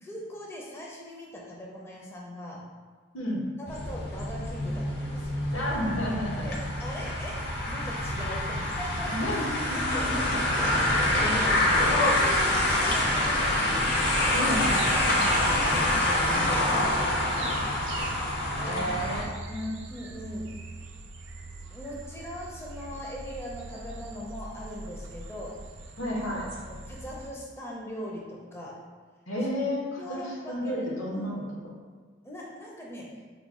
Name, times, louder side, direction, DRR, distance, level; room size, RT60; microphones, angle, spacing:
voice 1, 0.0-2.7 3.6-5.4 6.4-9.3 9.9-10.2 10.5-14.5 14.9-15.2 15.7-17.6 18.6-18.9 19.9-20.6 21.7-25.6 26.6-28.8 29.4-29.5 30.0-31.3 32.2-33.2, equal, 15° left, -3 dB, 0.4 m, -41 dB
voice 2, 3.1-3.5 5.5-6.5 9.1-10.4 10.8-11.5 14.3-14.7 18.6-19.8 26.0-26.5 29.3-31.7, equal, 85° left, -2 dB, 0.9 m, -32 dB
sound 1, 3.7-19.2, left 1 dB, 50° left, 0.7 m, -26 dB
sound 2, 9.7-27.3, right 2 dB, 65° right, 0.5 m, -43 dB
4.7 x 2.2 x 3.6 m, 1.5 s
head